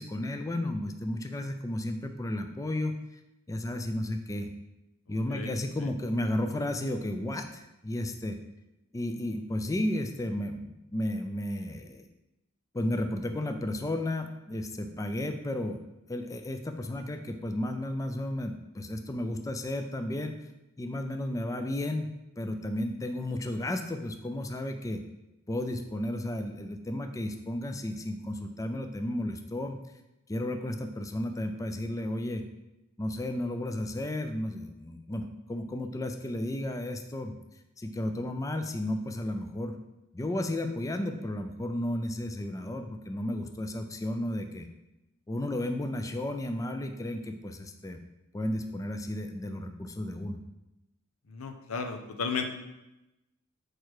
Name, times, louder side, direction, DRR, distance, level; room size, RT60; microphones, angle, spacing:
voice 1, 0.0-3.0 3.5-4.5 5.1-8.4 8.9-12.1 12.7-15.8 16.1-20.4 20.8-25.0 25.5-29.8 30.3-32.4 33.0-37.4 37.8-39.7 40.1-44.7 45.3-48.0 48.3-50.4, left 1 dB, 15° left, 6 dB, 0.4 m, -33 dB
voice 2, 5.3-5.9 51.3-52.4, left 5 dB, 90° left, 6 dB, 0.8 m, -35 dB
6.6 x 4.6 x 4.7 m, 0.94 s
head